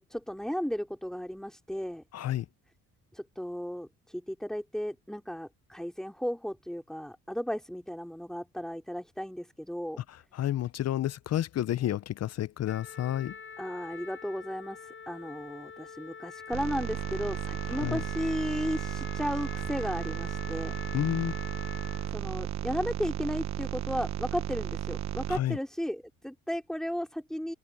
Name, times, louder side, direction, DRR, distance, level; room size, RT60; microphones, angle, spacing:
voice 1, 0.0-2.0 3.1-10.0 13.6-20.7 22.1-27.5, equal, ahead, 3.4 m, -35 dB
voice 2, 2.1-2.5 10.1-13.4 17.7-18.0 20.9-21.3 25.3-25.6, left 12 dB, 55° left, 0.6 m, -30 dB
Trumpet, 12.7-22.2, left 6 dB, 40° left, 6.7 m, -45 dB
sound 1, 16.5-25.4, right 11 dB, 65° right, 1.1 m, -34 dB
open air
cardioid pair, 90°, 30 cm